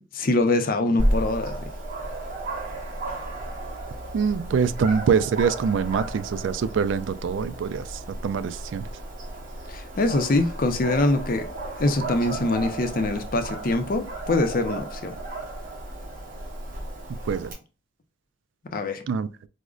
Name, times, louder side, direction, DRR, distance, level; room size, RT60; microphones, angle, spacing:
voice 1, 0.1-1.6 9.7-11.4 11.8-15.2 18.7-19.0, left 2 dB, 50° left, 0.5 m, -24 dB
Dog, 1.0-17.5, right 1 dB, 45° right, 1.1 m, -33 dB
voice 2, 4.1-8.9 17.2-17.5 19.1-19.3, right 6 dB, 80° right, 0.3 m, -24 dB
4.9 x 2.1 x 2.3 m
head